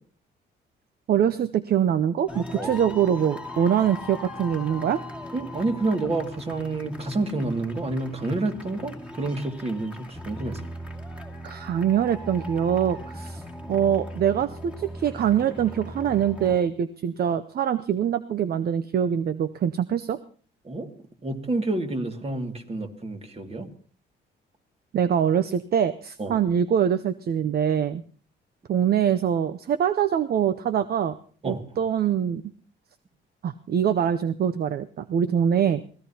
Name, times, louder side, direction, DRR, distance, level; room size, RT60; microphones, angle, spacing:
voice 1, 1.1-5.0 11.4-13.4 13.7-20.2 24.9-28.0 28.7-31.2 31.4-32.4 33.4-35.8, right 8 dB, 50° right, 12 dB, 0.6 m, -24 dB
sound 1, 2.3-16.6, left 1 dB, 5° right, 2.3 m, -39 dB
voice 2, 5.3-10.6 20.6-20.9 21.2-23.7 26.2-26.4 31.4-31.6, right 2 dB, 30° right, 5 dB, 2.2 m, -29 dB
24.0 x 16.0 x 2.9 m, 0.43 s
cardioid pair, 90°, 20 cm